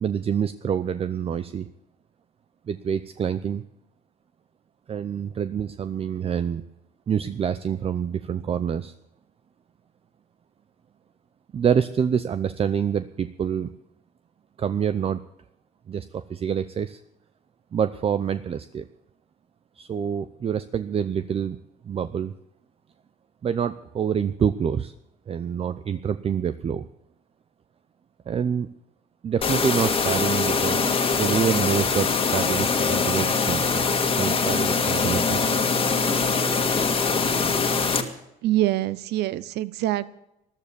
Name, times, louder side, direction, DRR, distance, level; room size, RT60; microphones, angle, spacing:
voice 1, 0.0-1.7 2.7-3.6 4.9-6.6 7.1-8.9 11.5-13.7 14.6-15.2 15.9-17.0 17.7-18.9 19.8-21.6 21.8-22.3 23.4-24.9 25.3-26.8 28.3-28.7 29.2-33.8 34.2-35.6, right 8 dB, 35° right, 12 dB, 0.6 m, -26 dB
sound 1, 29.4-38.0, left 4 dB, 30° left, 1.9 m, -23 dB
voice 2, 38.4-40.1, right 15 dB, 80° right, 17 dB, 0.8 m, -25 dB
13.5 x 12.0 x 7.0 m, 0.84 s
cardioid pair, 110°, 17 cm